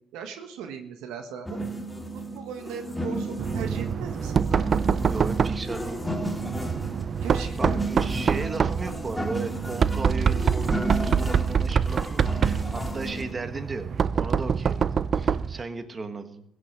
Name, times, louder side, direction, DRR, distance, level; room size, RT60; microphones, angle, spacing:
voice 1, 0.1-1.6 2.1-4.3 7.2-7.9, right 7 dB, 80° right, 5 dB, 1.4 m, -38 dB
sound 1, 1.5-13.3, right 1 dB, 5° left, 1.8 m, -33 dB
Knock, 3.4-15.6, right 6 dB, 45° right, 0.4 m, -26 dB
voice 2, 5.1-6.1 7.6-13.9 14.1-16.4, right 3 dB, 30° right, 8 dB, 1.4 m, -35 dB
16.0 x 6.9 x 7.5 m, 0.78 s
supercardioid pair, 75°, 0 cm